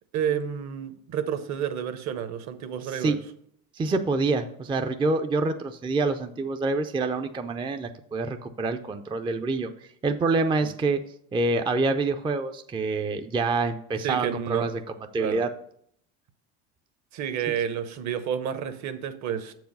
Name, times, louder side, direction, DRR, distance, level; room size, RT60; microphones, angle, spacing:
voice 1, 0.1-3.2 10.6-10.7 14.0-14.7 15.2-15.4 17.1-19.5, right 8 dB, 50° right, 0.9 m, -30 dB
voice 2, 3.7-11.0 11.3-15.5, right 3 dB, 15° right, 0.4 m, -27 dB
7.1 x 4.8 x 5.3 m
supercardioid pair, 90°, 36 cm